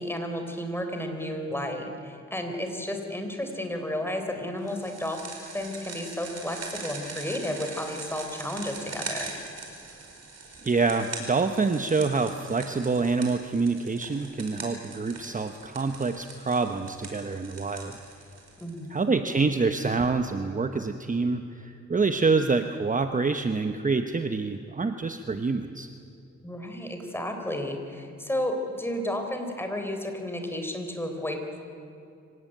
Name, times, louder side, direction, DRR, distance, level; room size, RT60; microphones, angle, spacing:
voice 1, 0.0-5.2 5.5-9.3 18.6-19.1 26.4-31.6, left 1 dB, 10° left, 4 dB, 3.9 m, -32 dB
sound 1, 4.7-19.0, right 3 dB, 60° right, 4.9 m, -41 dB
voice 2, 10.6-18.0 18.9-25.9, right 4 dB, 25° right, 7 dB, 1.0 m, -26 dB
25.0 x 17.5 x 9.2 m, 2.6 s
cardioid pair, 95°, 29 cm